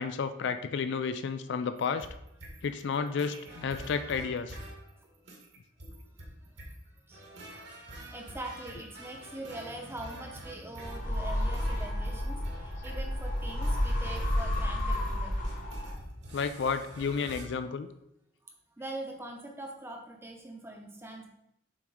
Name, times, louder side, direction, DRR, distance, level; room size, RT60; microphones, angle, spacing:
voice 1, 0.0-2.1 2.6-4.6 16.3-17.9, left 5 dB, 55° left, 10 dB, 0.3 m, -31 dB
sound 1, 1.8-17.4, right 1 dB, 55° right, 1.5 m, -47 dB
voice 2, 6.4-6.7 7.1-15.3 18.4-21.3, right 2 dB, 10° right, 1 dB, 0.8 m, -43 dB
sound 2, 10.8-16.2, left 1 dB, 40° left, 1.1 m, -31 dB
7.2 x 2.9 x 4.8 m, 0.82 s
head